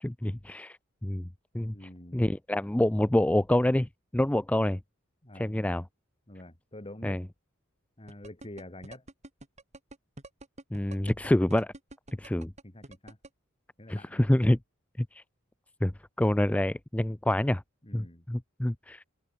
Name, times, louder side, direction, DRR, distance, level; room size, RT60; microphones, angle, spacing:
voice 1, 0.0-0.8 1.0-1.3 1.5-1.7 2.1-4.8 5.4-5.8 7.0-7.2 10.7-11.7 12.2-12.5 13.9-14.6 15.0-15.2 15.8-15.9 16.2-17.6 17.9-19.0, left 1 dB, 5° left, 0.4 m, -27 dB
voice 2, 1.7-2.2 5.2-5.6 6.3-7.2 8.0-9.0 12.6-13.2 13.8-14.2 17.8-18.2, left 1 dB, 25° left, 2.8 m, -46 dB
sound 1, 8.1-13.3, right 2 dB, 35° right, 2.9 m, -46 dB
open air
head